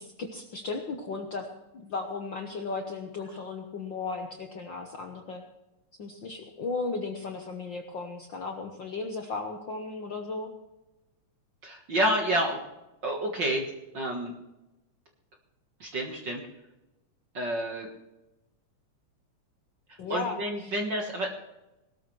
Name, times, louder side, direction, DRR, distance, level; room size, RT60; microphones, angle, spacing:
voice 1, 0.0-1.5 1.8-5.4 6.0-10.5 20.0-20.7, left 4 dB, 65° left, 3 dB, 1.1 m, -35 dB
voice 2, 11.6-12.6 13.0-14.3 15.8-16.4 17.3-17.9 20.1-21.3, right 1 dB, 45° right, 1 dB, 1.6 m, -29 dB
19.0 x 13.0 x 3.2 m, 0.97 s
omnidirectional pair, 3.7 m